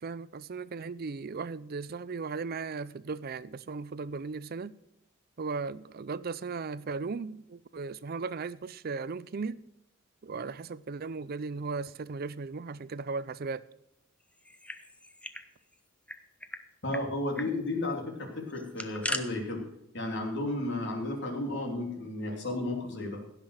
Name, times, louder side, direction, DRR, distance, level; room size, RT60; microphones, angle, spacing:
voice 1, 0.0-4.7 5.4-9.6 10.2-13.6, right 4 dB, 50° right, 0.5 m, -37 dB
sound 1, 14.4-15.5 15.7-15.8 16.1-16.6 16.9-17.0 17.3-17.5 18.5-19.2, left 1 dB, 5° left, 0.6 m, -37 dB
voice 2, 16.8-19.6 19.9-23.2, left 2 dB, 60° left, 3.0 m, -33 dB
16.5 x 5.9 x 6.5 m
head